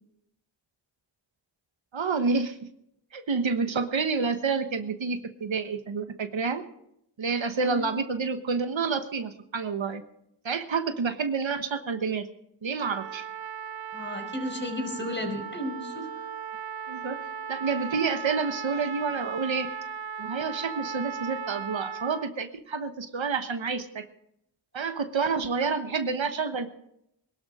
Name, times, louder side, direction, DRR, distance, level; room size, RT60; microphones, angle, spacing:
voice 1, 1.9-2.6 3.1-6.6 7.2-10.0 10.4-12.3 12.6-13.3 16.9-17.2 17.5-19.7 20.2-24.1 24.7-26.7, right 5 dB, 85° right, 8 dB, 1.3 m, -29 dB
Trumpet, 12.8-22.3, right 6 dB, 55° right, 0.7 m, -37 dB
voice 2, 13.9-16.1 25.6-25.7, left 1 dB, 25° left, 3 dB, 5.2 m, -34 dB
21.0 x 12.0 x 4.9 m, 0.76 s
cardioid pair, 45°, 45 cm